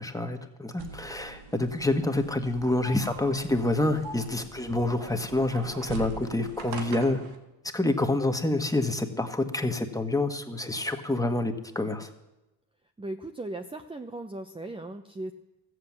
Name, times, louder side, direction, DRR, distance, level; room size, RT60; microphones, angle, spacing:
voice 1, 0.0-7.2 7.7-12.1, left 2 dB, 10° left, 6 dB, 1.5 m, -27 dB
sound 1, 0.8-7.3, right 4 dB, 75° right, 2.0 m, -42 dB
voice 2, 13.0-15.3, right 2 dB, 15° right, 7 dB, 0.8 m, -37 dB
14.0 x 7.8 x 7.4 m, 0.99 s
cardioid pair, 80°, 40 cm